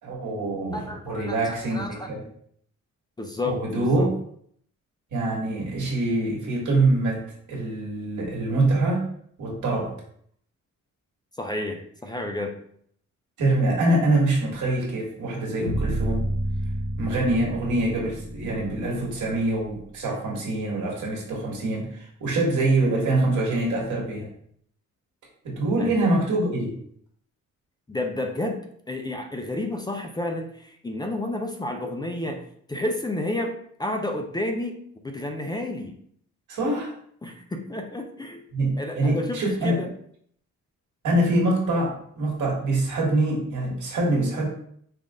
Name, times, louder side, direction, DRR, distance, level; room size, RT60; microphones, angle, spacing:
voice 1, 0.0-2.2 3.4-4.2 5.1-9.1 9.4-10.0 13.4-16.3 17.0-24.3 25.4-26.8 36.5-36.9 38.5-39.8 41.0-44.5, right 2 dB, 80° right, -3 dB, 1.7 m, -24 dB
voice 2, 0.7-2.1 3.2-4.1 11.4-12.6 25.8-25.9 27.9-28.6 28.9-32.4 32.7-36.0 37.2-38.4 38.8-39.9, left 1 dB, 15° left, 3 dB, 0.4 m, -31 dB
sound 1, 15.7-19.8, right 1 dB, 55° left, 1.1 m, -30 dB
5.6 x 2.5 x 3.6 m, 0.64 s
cardioid pair, 135°, 30 cm